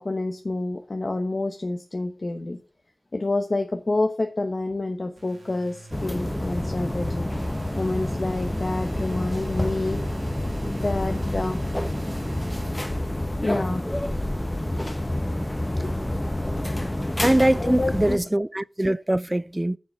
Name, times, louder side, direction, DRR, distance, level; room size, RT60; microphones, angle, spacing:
voice 1, 0.0-2.6 3.1-7.3 7.7-10.0 10.7-11.6 13.4-13.8 15.7-16.0 16.5-17.0 17.6-18.2, left 2 dB, 50° left, 1.0 m, -28 dB
sound 1, 5.2-13.5, right 3 dB, 80° right, 1.8 m, -44 dB
sound 2, 5.9-18.2, left 1 dB, 15° left, 1.2 m, -28 dB
voice 2, 17.2-19.8, right 1 dB, 20° right, 0.4 m, -22 dB
7.4 x 6.7 x 6.0 m
wide cardioid pair, 65°, 0 cm